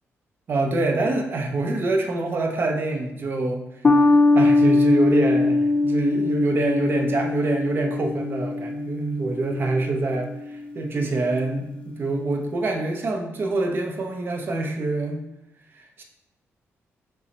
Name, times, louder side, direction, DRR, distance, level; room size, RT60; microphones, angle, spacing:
voice 1, 0.5-3.7 4.0-4.1 4.3-15.2 15.7-16.0, right 2 dB, 45° right, 2 dB, 0.6 m, -25 dB
sound 1, 3.8-10.6, left 2 dB, 20° left, 0.5 m, -21 dB
5.4 x 2.1 x 4.0 m, 0.87 s
wide cardioid pair, 145°, 5 cm